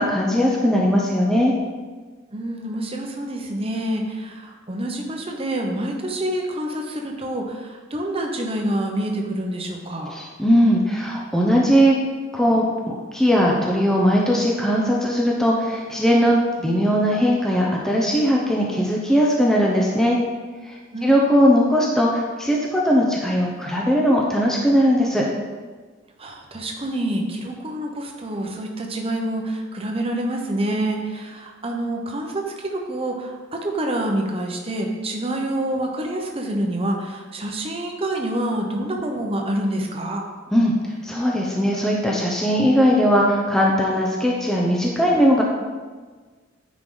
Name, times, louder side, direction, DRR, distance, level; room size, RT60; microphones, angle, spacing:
voice 1, 0.0-1.5 10.1-12.0 12.3-20.2 20.7-20.8 21.0-25.3 40.5-40.7 41.0-45.4, equal, 5° left, -3 dB, 0.7 m, -19 dB
voice 2, 2.3-10.1 20.9-21.5 26.2-40.2, right 1 dB, 30° right, 1 dB, 1.0 m, -27 dB
9.9 x 4.8 x 3.9 m, 1.4 s
head